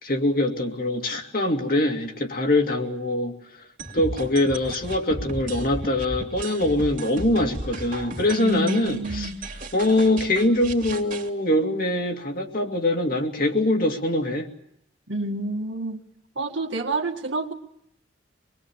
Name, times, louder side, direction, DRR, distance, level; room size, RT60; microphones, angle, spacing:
voice 1, 0.0-3.4 3.9-9.3 9.7-14.5, left 1 dB, 50° left, 3 dB, 2.5 m, -23 dB
sound 1, 3.8-11.3, right 2 dB, 45° right, 2.6 m, -35 dB
voice 2, 8.4-9.4 15.1-16.0 16.4-17.5, right 2 dB, 80° right, 2 dB, 1.9 m, -28 dB
25.0 x 21.0 x 8.7 m, 0.73 s
head